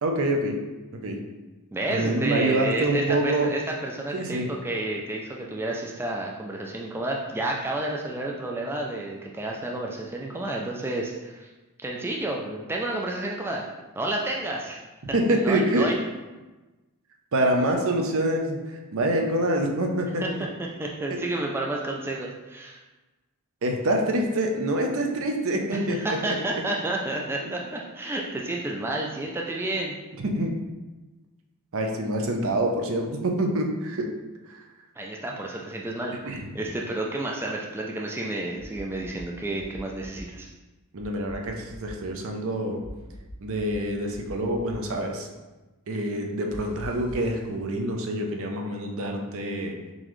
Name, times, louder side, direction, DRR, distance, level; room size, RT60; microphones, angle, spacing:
voice 1, 0.0-0.6 0.9-1.2 1.9-3.5 4.1-4.5 15.0-15.9 17.3-20.4 21.1-21.2 23.6-26.2 27.5-27.6 30.2-30.5 31.7-34.1 34.5-34.6 36.3-36.5 40.9-42.8 43.4-45.3 45.9-49.7, right 1 dB, 65° right, 2 dB, 0.6 m, -26 dB
voice 2, 1.7-11.5 11.8-13.6 14.0-14.8 15.3-15.9 20.2-20.3 20.8-22.8 25.7-30.0 35.0-40.5, right 2 dB, 10° right, -1 dB, 0.3 m, -30 dB
sound 1, 38.6-39.2 39.6-40.2 41.0-41.9 42.8-43.8 44.1-44.7 46.5-47.3, equal, 40° left, 0.9 m, -44 dB
3.9 x 3.8 x 3.1 m, 1.2 s
head